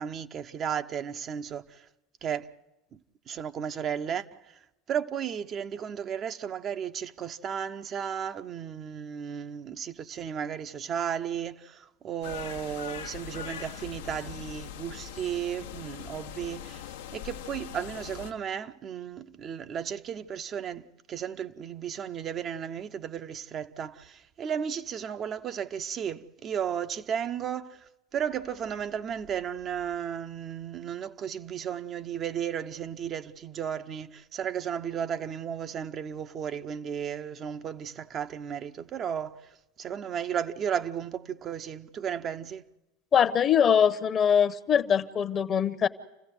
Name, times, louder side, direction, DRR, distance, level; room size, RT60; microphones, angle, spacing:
voice 1, 0.0-1.9 2.2-2.5 2.9-3.0 3.3-4.6 4.9-16.8 17.1-39.5 39.8-42.7, right 8 dB, 40° right, 0.8 m, -34 dB
sound 1, 12.2-18.3, left 9 dB, 80° left, 1.0 m, -41 dB
voice 2, 43.1-45.9, left 8 dB, 40° left, 1.0 m, -22 dB
28.5 x 15.0 x 8.0 m
hypercardioid pair, 85°, 0 cm